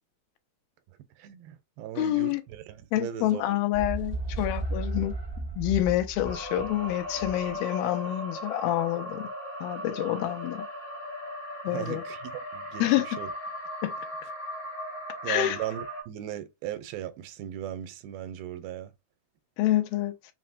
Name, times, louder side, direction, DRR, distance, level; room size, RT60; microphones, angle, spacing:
voice 1, 1.2-3.6 11.7-13.3 15.2-18.9, right 11 dB, 85° right, 2.5 m, -37 dB
voice 2, 2.0-2.4 2.9-5.1 5.6-9.3 9.6-10.7 11.6-12.0 12.8-13.1 13.8-13.9 15.3-15.6 19.6-20.1, left 14 dB, 85° left, 2.4 m, -27 dB
sound 1, 3.7-7.5, right 2 dB, 65° right, 0.5 m, -34 dB
sound 2, 6.2-16.0, equal, 55° left, 0.8 m, -38 dB
5.7 x 2.1 x 2.5 m
omnidirectional pair, 4.2 m